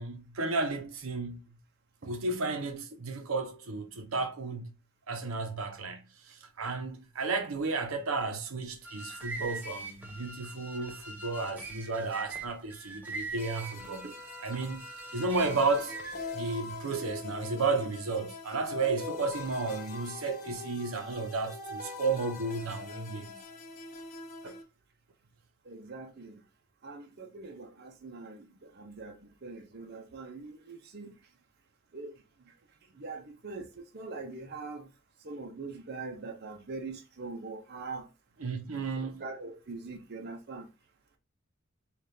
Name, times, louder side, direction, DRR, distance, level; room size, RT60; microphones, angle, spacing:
voice 1, 0.0-1.4 2.1-4.6 5.1-14.0 14.4-15.9 16.3-23.4 24.4-24.6 38.4-39.2, right 3 dB, 85° right, 0.8 m, -33 dB
sound 1, 8.7-16.3, right 3 dB, 10° right, 0.7 m, -42 dB
sound 2, 13.3-24.6, left 4 dB, 40° left, 0.6 m, -43 dB
voice 2, 25.7-26.3 26.8-28.5 28.7-31.1 31.9-32.1 33.0-34.9 35.2-38.1 39.0-40.7, right 3 dB, 50° right, 0.6 m, -42 dB
5.0 x 2.4 x 2.7 m
head